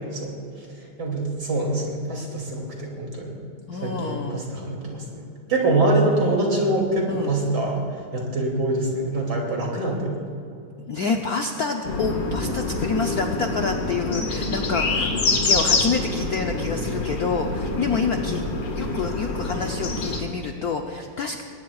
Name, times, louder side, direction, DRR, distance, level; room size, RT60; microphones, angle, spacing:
voice 1, 1.0-3.3 3.8-5.2 5.5-7.8 8.1-10.1, right 2 dB, 50° right, -1 dB, 3.3 m, -24 dB
voice 2, 3.7-4.5 7.1-7.3 10.9-18.4 18.8-21.4, left 4 dB, 65° left, 3 dB, 1.0 m, -28 dB
sound 1, 11.8-20.2, left 3 dB, 85° left, 2.7 m, -26 dB
21.0 x 19.0 x 2.4 m, 2.6 s
omnidirectional pair, 2.3 m